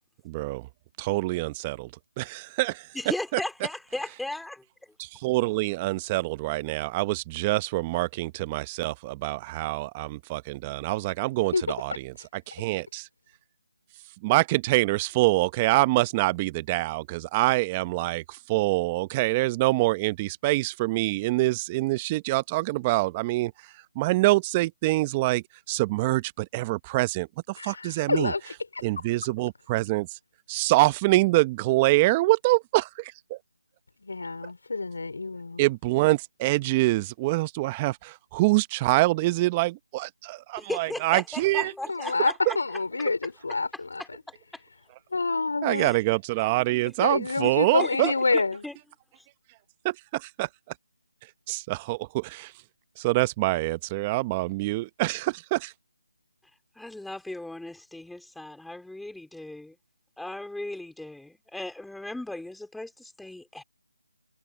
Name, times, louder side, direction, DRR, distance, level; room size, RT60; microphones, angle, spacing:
voice 1, 0.2-0.7 1.0-1.9 2.2-2.9 3.3-3.4 5.0-11.9 12.5-13.1 14.2-23.5 23.9-28.3 28.8-30.2 30.5-33.4 35.6-41.7 45.6-48.1 49.8-50.5 51.5-52.5 53.0-55.7, right 20 dB, 20° right, 0.8 m, -25 dB
voice 2, 2.9-4.9 40.6-42.3 44.3-44.6 45.8-46.0 46.4-46.5 47.8-48.7 49.2-49.3 56.8-59.8 60.2-63.6, left 2 dB, ahead, 3.5 m, -37 dB
voice 3, 27.6-29.1 34.0-35.6 41.9-44.2 45.1-46.0 47.0-48.6, left 3 dB, 70° left, 4.0 m, -28 dB
figure-of-eight pair, 165°, 0 cm